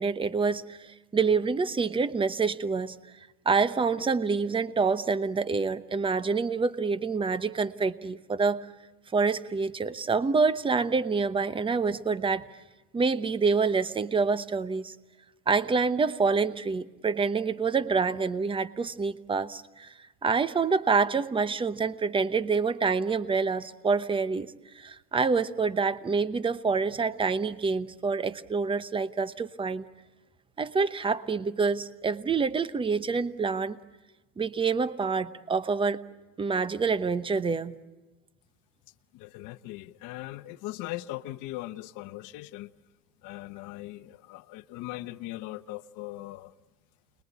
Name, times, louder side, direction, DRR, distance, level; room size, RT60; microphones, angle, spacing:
voice 1, 0.0-3.0 3.4-8.7 9.1-12.4 12.9-14.9 15.5-19.9 20.2-29.8 30.6-33.8 34.4-36.0 36.4-37.8, right 4 dB, 10° right, 0.9 m, -27 dB
voice 2, 39.1-42.7 43.2-46.5, left 17 dB, 40° left, 1.1 m, -39 dB
29.5 x 21.5 x 8.3 m
supercardioid pair, 120°, 45 cm